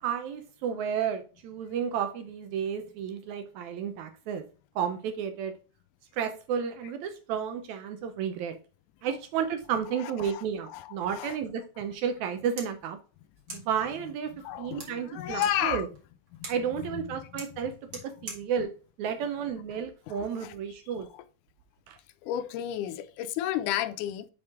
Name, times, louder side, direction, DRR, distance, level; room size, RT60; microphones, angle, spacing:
voice 1, 0.0-4.4 4.8-5.5 6.1-8.6 9.0-13.0 13.5-14.3 14.6-15.9 16.5-17.7 18.0-18.7 19.0-21.1 21.9-22.0, right 7 dB, 80° right, 1.8 m, -32 dB
voice 2, 10.7-11.4 13.5-13.7 14.3-15.9 16.3-16.5 16.9-17.4 20.1-20.5 22.2-24.3, left 11 dB, 80° left, 2.0 m, -33 dB
sound 1, 12.5-20.2, right 3 dB, 40° right, 2.3 m, -48 dB
6.0 x 5.2 x 3.5 m
omnidirectional pair, 3.7 m